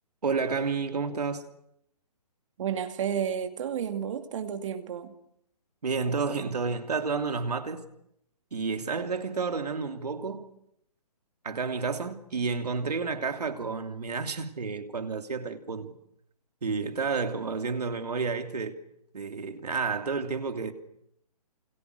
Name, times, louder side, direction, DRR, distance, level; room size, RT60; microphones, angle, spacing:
voice 1, 0.2-1.5 5.8-7.8 8.5-10.5 11.4-15.9 16.6-18.8 19.1-20.7, right 4 dB, 80° right, 3.1 m, -30 dB
voice 2, 2.6-5.1, right 8 dB, 50° right, 2.4 m, -31 dB
29.5 x 28.0 x 6.7 m
hypercardioid pair, 140°, 20 cm